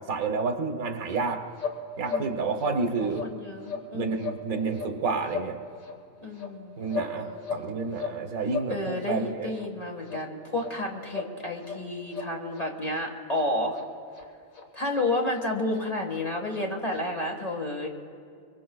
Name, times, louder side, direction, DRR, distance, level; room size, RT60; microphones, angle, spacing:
voice 1, 0.1-1.4 2.0-3.2 3.9-5.6 6.8-9.5, right 4 dB, 90° right, 5 dB, 1.5 m, -29 dB
sound 1, 1.1-1.3 1.6-1.8 2.0-2.3 2.6-2.7 3.1-3.3 3.6-3.9 4.2-4.4 4.7-5.0 5.2-5.5 5.8-6.0 6.3-7.1 7.4-8.2 8.4-8.7 9.0-9.2 9.5-9.7 10.0-10.2 10.6-10.7 11.1-11.3 11.6-11.8 12.1-12.7 12.9-13.0 13.3-13.5 13.7-13.9 14.1-14.3 14.5-14.6 14.9-15.0 15.3-15.4 15.7-15.8 16.1-16.2 16.5-16.6 16.9-17.0, left 5 dB, 80° left, 1.9 m, -36 dB
voice 2, 2.1-2.6 3.0-4.2 6.2-6.8 7.1-7.8 8.7-13.8 14.7-17.9, left 1 dB, 30° left, 1 dB, 1.6 m, -31 dB
24.5 x 23.5 x 2.3 m, 2.3 s
omnidirectional pair, 1.4 m